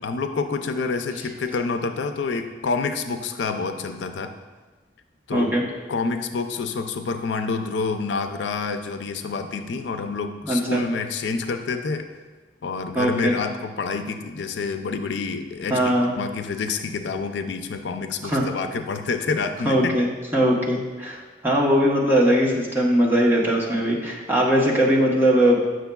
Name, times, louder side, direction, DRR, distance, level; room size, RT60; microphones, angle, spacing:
voice 1, 0.0-4.3 5.3-5.5 5.9-12.1 12.6-20.0, left 4 dB, 90° left, 8 dB, 0.4 m, -28 dB
voice 2, 5.3-5.6 10.4-10.8 12.9-13.4 15.7-16.1 18.2-18.4 19.6-21.2 21.4-25.6, equal, 10° right, -4 dB, 1.0 m, -20 dB
7.9 x 6.3 x 2.3 m, 1.3 s
head